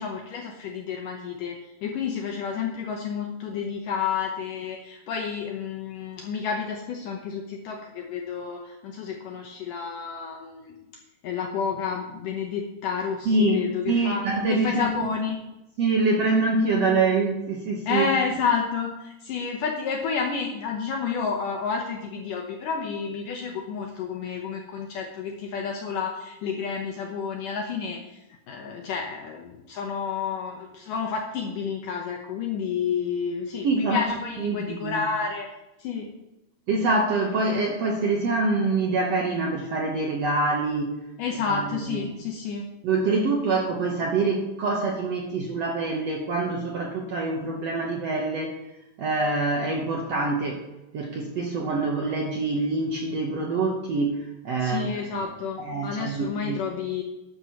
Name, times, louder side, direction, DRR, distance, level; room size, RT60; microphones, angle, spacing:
voice 1, 0.0-10.8 11.2-15.4 17.9-35.5 35.8-36.1 41.2-42.7 54.6-57.0, left 6 dB, 70° left, 1 dB, 2.3 m, -30 dB
voice 2, 13.3-14.9 15.8-18.1 33.6-34.0 34.4-35.0 36.7-40.9 41.5-41.6 42.8-48.6 49.0-50.6 50.9-54.9 55.7-56.6, right 3 dB, 65° right, 0 dB, 1.6 m, -25 dB
14.0 x 11.0 x 3.0 m, 0.96 s
omnidirectional pair, 4.4 m